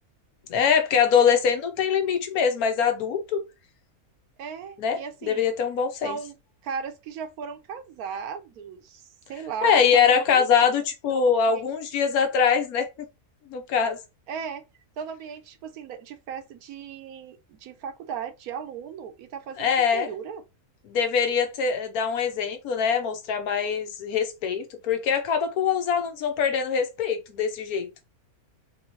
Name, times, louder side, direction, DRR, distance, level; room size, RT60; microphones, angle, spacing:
voice 1, 0.5-3.4 4.8-6.2 9.6-12.9 13.5-14.0 19.6-20.1 20.9-27.9, left 7 dB, 80° left, 1.2 m, -23 dB
voice 2, 4.4-5.5 6.0-6.4 6.6-10.4 11.1-11.6 14.3-14.6 15.0-20.4, right 7 dB, 80° right, 1.2 m, -36 dB
3.8 x 3.1 x 2.7 m
omnidirectional pair, 1.6 m